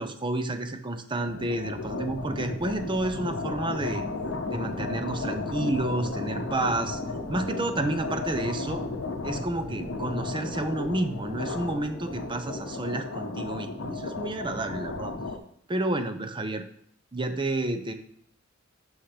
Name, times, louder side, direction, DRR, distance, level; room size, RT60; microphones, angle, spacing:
voice 1, 0.0-4.0 4.5-7.0 7.3-8.8 9.2-15.1 15.7-16.6 17.1-17.9, right 2 dB, 25° right, 8 dB, 0.7 m, -30 dB
sound 1, 1.2-15.4, left 3 dB, 70° left, 0.8 m, -34 dB
sound 2, 4.1-12.8, left 1 dB, 10° left, 0.8 m, -43 dB
11.5 x 5.7 x 3.4 m, 0.68 s
head